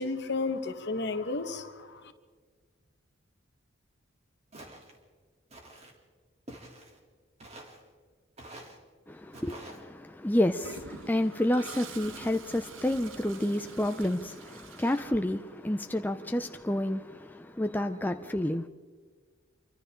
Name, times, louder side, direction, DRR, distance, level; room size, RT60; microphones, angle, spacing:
voice 1, 0.0-2.1, left 3 dB, 55° left, 1.5 m, -33 dB
Walk footsteps, 4.5-5.0 5.5-5.9 6.5-7.0 7.4-7.8 8.4-8.8 9.3-9.8, right 1 dB, 30° right, 3.2 m, -47 dB
voice 2, 9.1-18.7, left 1 dB, 10° left, 0.5 m, -30 dB
Toilet flush, 10.6-15.7, right 5 dB, 75° right, 1.2 m, -47 dB
28.0 x 24.5 x 3.8 m
head